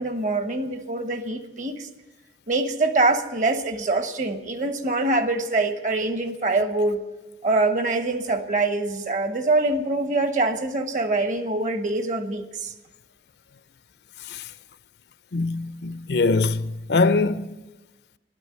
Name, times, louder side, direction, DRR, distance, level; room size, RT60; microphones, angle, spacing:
voice 1, 0.0-1.9 2.5-7.0 7.4-12.7, right 2 dB, 45° right, 1.2 m, -24 dB
voice 2, 15.3-17.6, left 3 dB, 70° left, 0.6 m, -23 dB
12.5 x 11.5 x 9.5 m
head